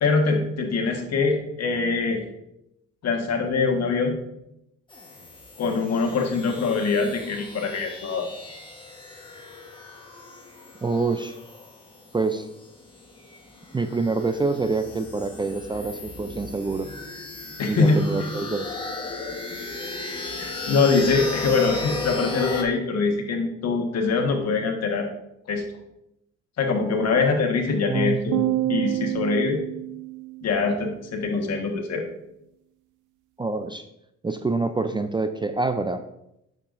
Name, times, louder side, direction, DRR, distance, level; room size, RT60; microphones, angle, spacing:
voice 1, 0.0-2.2 3.0-4.2 5.6-8.3 17.6-18.0 20.4-25.1 25.5-25.6 26.6-28.4 28.7-29.6 30.4-32.0, left 4 dB, 60° left, 3 dB, 1.4 m, -23 dB
sound 1, 4.9-22.6, left 3 dB, 15° left, 1.2 m, -36 dB
voice 2, 10.8-11.3 12.1-12.5 13.7-16.9 17.7-18.8 27.8-28.7 33.4-33.8 34.2-36.0, right 3 dB, 15° right, 8 dB, 0.4 m, -26 dB
sound 2, 28.3-30.7, right 16 dB, 80° right, 0.5 m, -28 dB
8.3 x 6.8 x 2.6 m, 0.83 s
cardioid pair, 90°, 30 cm